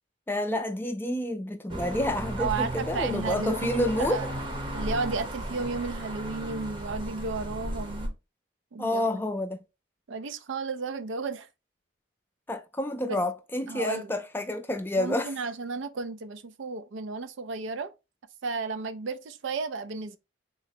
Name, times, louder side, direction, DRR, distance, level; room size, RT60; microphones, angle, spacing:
voice 1, 0.3-4.2 8.8-9.6 12.5-15.3, left 1 dB, 10° left, 0.4 m, -29 dB
sound 1, 1.7-8.1, right 1 dB, 25° right, 0.7 m, -35 dB
voice 2, 2.4-4.3 4.7-8.1 8.7-9.2 10.1-11.5 13.1-13.2 13.7-14.1 15.0-17.9 18.4-20.2, right 4 dB, 70° right, 0.4 m, -33 dB
3.9 x 2.0 x 4.2 m
head